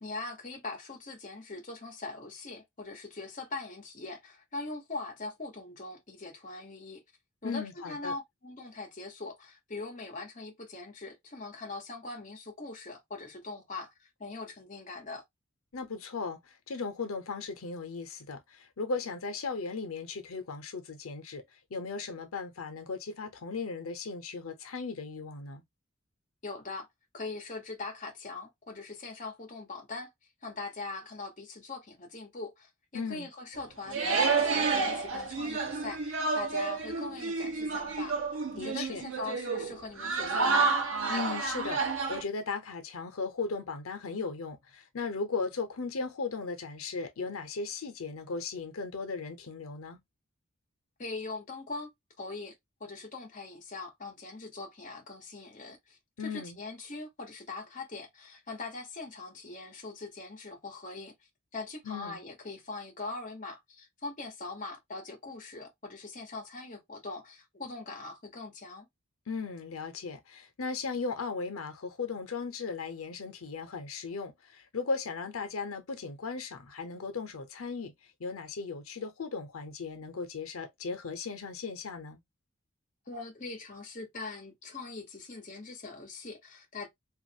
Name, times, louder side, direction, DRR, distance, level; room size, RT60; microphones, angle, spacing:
voice 1, 0.0-7.0 7.4-15.2 26.4-26.9 27.1-30.1 30.4-40.8 51.0-51.9 52.2-52.5 52.8-61.1 61.5-68.9 83.1-86.9, left 3 dB, 35° left, 0.9 m, -41 dB
voice 2, 7.4-8.1 15.7-21.4 21.7-25.6 32.9-33.3 38.6-39.0 41.1-50.0 56.2-56.6 61.8-62.2 69.3-77.9 78.2-82.2, left 4 dB, 90° left, 0.7 m, -37 dB
sound 1, 33.6-33.7 33.9-42.2, right 4 dB, 75° right, 0.7 m, -30 dB
3.1 x 2.5 x 2.7 m
head